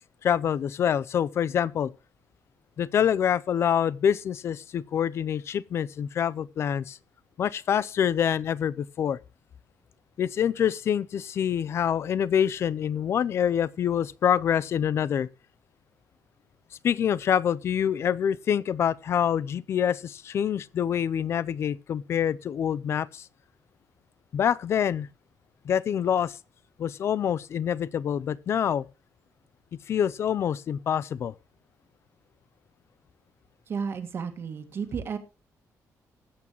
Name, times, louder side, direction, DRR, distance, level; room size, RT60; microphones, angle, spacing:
voice 1, 0.2-1.9 2.8-7.0 7.4-9.2 10.2-15.3 16.8-23.3 24.3-25.1 25.6-26.4 26.8-28.8 29.9-31.3, left 9 dB, 45° left, 0.5 m, -26 dB
voice 2, 33.7-35.2, right 6 dB, 40° right, 1.8 m, -32 dB
20.5 x 8.5 x 3.0 m
cardioid pair, 180°, 6 cm